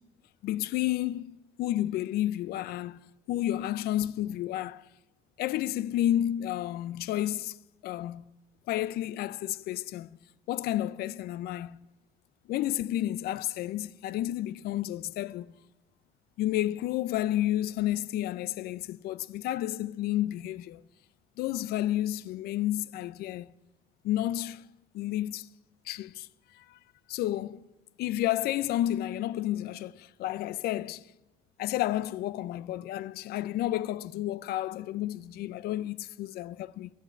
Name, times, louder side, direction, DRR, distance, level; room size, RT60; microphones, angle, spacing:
voice 1, 0.4-3.0 3.3-4.9 5.4-7.6 7.8-8.3 8.7-10.2 10.5-11.9 12.5-15.5 16.4-20.8 21.4-23.5 24.0-24.6 24.9-25.5 25.9-26.8 27.1-27.6 28.0-31.1 31.6-36.9, left 13 dB, 65° left, 0.4 m, -31 dB
10.5 x 7.4 x 9.6 m
cardioid pair, 110°, 17 cm